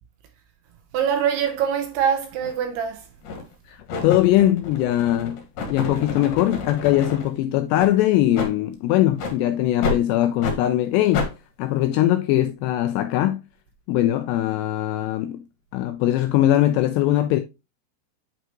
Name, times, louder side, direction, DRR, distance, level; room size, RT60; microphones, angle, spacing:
voice 1, 0.9-3.1, right 8 dB, 75° right, 2.6 m, -23 dB
sound 1, 2.4-2.6 3.2-3.5 3.9-7.3 7.7-7.9 8.3-8.5 9.2-9.4 9.8-10.0 10.4-10.6 11.1-11.3, left 4 dB, 60° left, 3.3 m, -29 dB
voice 2, 3.7-5.4 5.7-11.3 11.6-13.4 13.9-15.5 15.7-17.4, left 13 dB, 85° left, 2.5 m, -21 dB
8.9 x 4.9 x 3.0 m
omnidirectional pair, 5.4 m